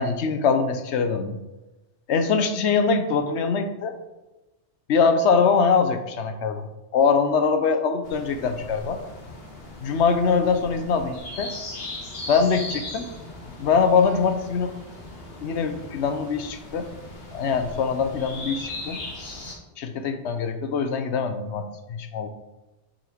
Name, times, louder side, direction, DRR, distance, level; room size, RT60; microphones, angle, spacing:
voice 1, 0.0-1.4 2.1-3.9 4.9-6.7 6.9-9.0 9.8-11.5 12.3-13.1 13.6-14.7 15.4-16.9 17.3-19.0 19.8-22.3, left 5 dB, 75° left, 8 dB, 1.0 m, -23 dB
sound 1, 8.0-19.6, left 2 dB, 60° left, 1.5 m, -38 dB
6.5 x 4.2 x 4.5 m, 1.1 s
omnidirectional pair, 1.2 m